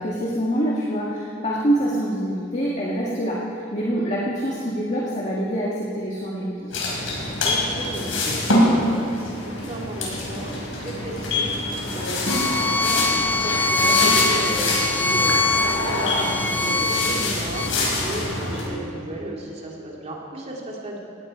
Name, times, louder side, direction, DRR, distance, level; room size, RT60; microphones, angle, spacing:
voice 1, 0.0-6.8, right 1 dB, 35° left, -4 dB, 1.8 m, -25 dB
sound 1, 6.7-18.6, left 2 dB, 85° left, 4.8 m, -25 dB
voice 2, 7.4-21.0, right 1 dB, 35° right, -2 dB, 2.9 m, -34 dB
Bowed string instrument, 12.3-17.7, left 3 dB, 10° left, 0.3 m, -23 dB
18.5 x 17.0 x 4.5 m, 2.6 s
head